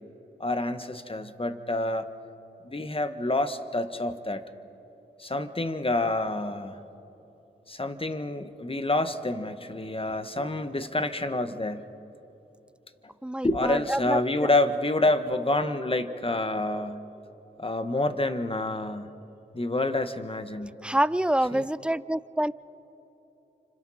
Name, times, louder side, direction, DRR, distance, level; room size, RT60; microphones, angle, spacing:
voice 1, 0.4-2.1 2.6-4.4 5.2-6.8 7.7-11.8 13.4-17.0 17.6-19.1 19.5-20.7 21.5-21.7, left 2 dB, 25° left, 9 dB, 1.5 m, -28 dB
voice 2, 13.2-14.2 20.8-22.5, right 1 dB, 5° right, 17 dB, 0.5 m, -26 dB
30.0 x 26.0 x 4.4 m, 3.0 s
cardioid pair, 40°, 21 cm